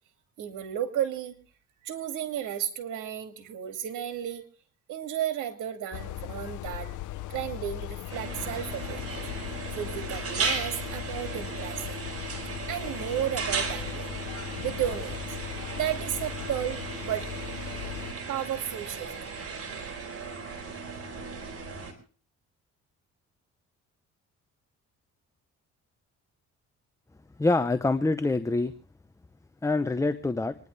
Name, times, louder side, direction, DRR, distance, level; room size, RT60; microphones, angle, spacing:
voice 1, 0.4-1.4 1.8-4.4 4.9-6.9 7.3-9.4 9.7-12.0 12.7-14.1 14.6-15.2 15.7-17.3 18.3-19.1, right 10 dB, 85° right, 7 dB, 2.5 m, -33 dB
sound 1, 5.9-18.1, left 15 dB, 80° left, 0.7 m, -39 dB
sound 2, 8.1-21.9, right 4 dB, 50° right, 4.1 m, -36 dB
voice 2, 27.4-28.7 29.6-30.6, left 2 dB, 10° left, 11 dB, 0.8 m, -25 dB
26.5 x 10.5 x 3.4 m, 0.41 s
cardioid pair, 90°, 30 cm